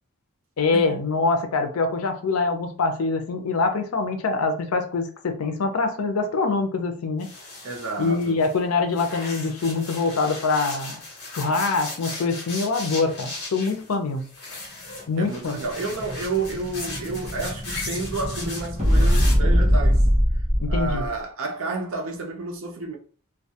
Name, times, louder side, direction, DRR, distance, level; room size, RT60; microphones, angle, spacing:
voice 1, 0.6-7.3 8.0-11.0 11.3-14.3 15.1-15.6 20.6-21.0, left 3 dB, 80° left, 0.5 m, -24 dB
sound 1, 7.2-8.6 8.9-19.4, left 2 dB, 50° left, 1.0 m, -37 dB
voice 2, 7.6-8.4 15.2-20.0 20.7-23.0, right 3 dB, 65° right, 0.6 m, -30 dB
Explosion, 15.0-21.1, equal, 30° right, 0.9 m, -22 dB
2.2 x 2.2 x 2.7 m
head